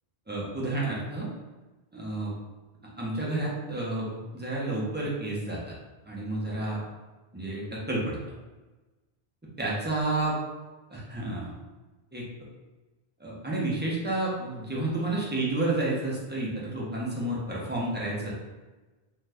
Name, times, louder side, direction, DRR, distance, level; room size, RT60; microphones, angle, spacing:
voice 1, 0.3-1.3 1.9-2.3 3.0-5.7 6.1-6.8 7.3-8.2 9.6-10.3 10.9-11.5 12.1-12.3 13.2-18.3, right 2 dB, 15° right, -6 dB, 0.4 m, -30 dB
2.6 x 2.3 x 3.3 m, 1.2 s
omnidirectional pair, 1.1 m